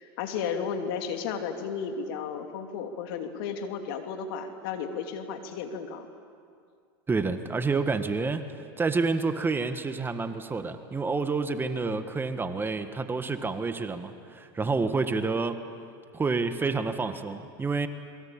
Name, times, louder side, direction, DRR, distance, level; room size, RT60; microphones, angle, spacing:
voice 1, 0.0-6.1, left 6 dB, 70° left, 5 dB, 3.0 m, -33 dB
voice 2, 7.1-8.4 8.8-15.6 16.1-17.9, right 4 dB, 15° right, 9 dB, 1.6 m, -28 dB
27.5 x 23.0 x 8.7 m, 2.2 s
hypercardioid pair, 105°, 13 cm